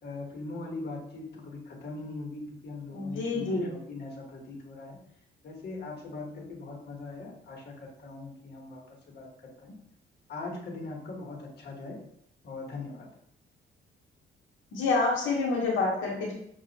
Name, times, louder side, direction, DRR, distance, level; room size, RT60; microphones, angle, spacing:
voice 1, 0.0-5.0 5.4-9.8 10.3-12.0 12.4-13.1, left 3 dB, 55° left, -1 dB, 1.1 m, -41 dB
voice 2, 2.9-3.8 14.7-16.3, left 3 dB, 80° left, -2 dB, 1.0 m, -28 dB
5.8 x 2.4 x 2.8 m, 0.71 s
cardioid pair, 90°, 20 cm